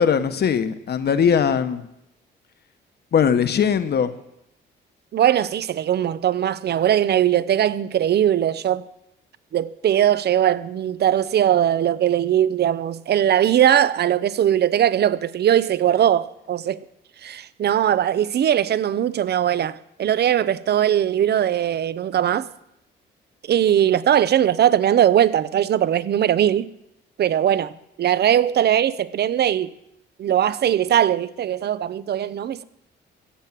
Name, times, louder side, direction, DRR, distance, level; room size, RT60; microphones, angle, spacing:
voice 1, 0.0-1.9 3.1-4.1, left 7 dB, 55° left, 1.2 m, -20 dB
voice 2, 5.1-8.8 9.5-16.8 17.2-22.5 23.5-26.7 27.2-29.7 30.2-32.6, right 10 dB, 55° right, 0.7 m, -20 dB
15.5 x 7.6 x 7.5 m
cardioid pair, 90°, 20 cm